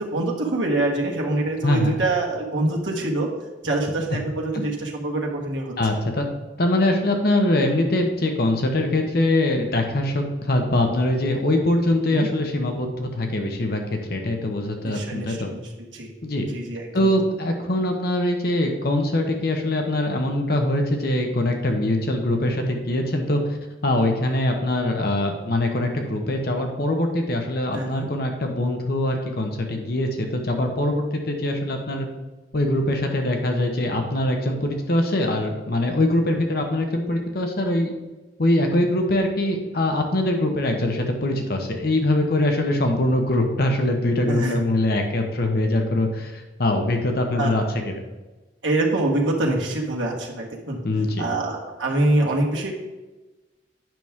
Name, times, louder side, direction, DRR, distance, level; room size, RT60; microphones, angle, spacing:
voice 1, 0.1-3.3 3.6-5.7 12.1-12.3 14.8-15.6 15.9-16.1 16.5-17.1 27.7-28.1 44.3-44.6 47.4-47.5 48.6-50.8 51.2-52.7, right 2 dB, 80° right, -1 dB, 1.5 m, -25 dB
voice 2, 1.6-1.9 4.1-4.2 4.5-4.6 5.8-6.3 6.6-15.5 16.2-16.4 16.9-23.6 23.8-32.1 32.5-37.9 38.4-48.0 50.8-51.2, left 1 dB, 55° left, 3 dB, 1.0 m, -23 dB
9.0 x 6.0 x 3.6 m, 1.1 s
head